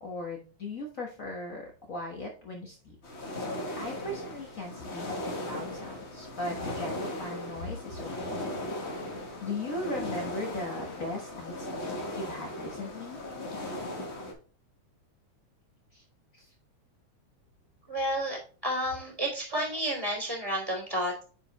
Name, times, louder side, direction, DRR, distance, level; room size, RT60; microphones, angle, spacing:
voice 1, 0.0-2.9 3.8-8.5 8.9-9.1 9.4-13.2 15.9-16.0 16.4-16.5, left 2 dB, 80° left, 0 dB, 0.7 m, -38 dB
sound 1, 3.0-14.3, left 1 dB, 35° left, 1.0 m, -37 dB
voice 2, 17.9-18.4 18.6-21.2, right 1 dB, 10° left, -1 dB, 2.4 m, -31 dB
8.5 x 4.8 x 3.2 m, 0.37 s
omnidirectional pair, 3.4 m